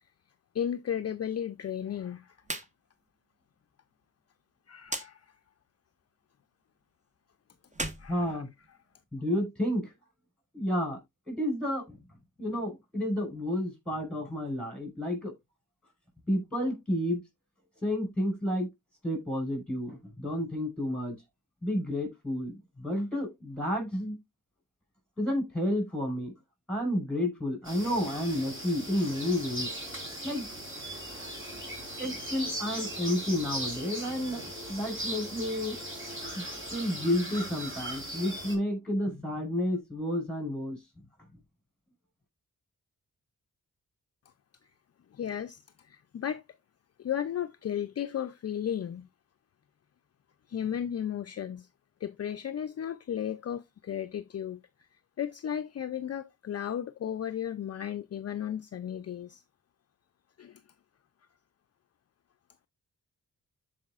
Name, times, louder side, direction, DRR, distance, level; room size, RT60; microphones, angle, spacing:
voice 1, 0.5-2.4 4.7-5.3 8.0-8.4 45.1-46.4 47.0-49.1 50.5-51.7 52.0-54.6 55.2-59.4 60.4-60.6, left 9 dB, 50° left, 0.5 m, -34 dB
sound 1, 2.4-2.7 3.0-3.1 4.8-5.1 7.7-9.0, right 2 dB, 20° right, 1.2 m, -37 dB
voice 2, 8.1-8.5 9.1-9.9 10.5-11.0 11.3-12.0 12.4-15.3 16.3-17.2 17.8-18.7 19.0-21.2 21.6-24.2 25.2-26.3 26.7-29.7 30.2-30.5 32.0-35.8 36.3-40.8, left 1 dB, 5° left, 5.0 m, -31 dB
sound 2, 27.6-38.6, right 1 dB, 40° right, 3.8 m, -38 dB
13.5 x 4.9 x 2.4 m
cardioid pair, 80°, 33 cm